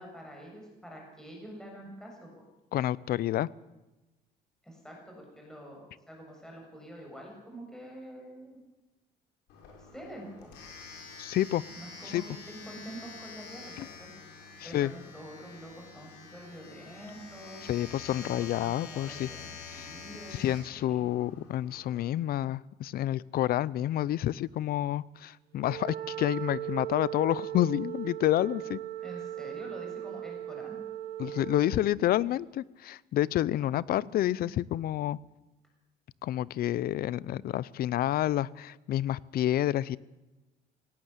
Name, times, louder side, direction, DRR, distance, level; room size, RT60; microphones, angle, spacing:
voice 1, 0.0-2.3 4.6-8.6 9.8-10.6 11.7-14.1 14.6-17.6 18.2-19.5 19.7-21.1 29.0-30.8 33.6-34.5, equal, 5° left, 0 dB, 7.3 m, -46 dB
voice 2, 2.7-3.5 11.2-11.6 12.1-12.2 13.8-13.9 14.6-14.9 17.6-19.3 19.7-19.9 20.3-28.8 31.2-35.2 36.2-40.0, left 13 dB, 65° left, 22 dB, 0.6 m, -29 dB
Domestic sounds home sounds, 9.5-22.0, left 5 dB, 85° left, 6.4 m, -47 dB
Wind instrument woodwind instrument, 25.6-31.9, right 12 dB, 65° right, 1.2 m, -38 dB
18.0 x 18.0 x 8.2 m, 1.1 s
cardioid pair, 110°, 17 cm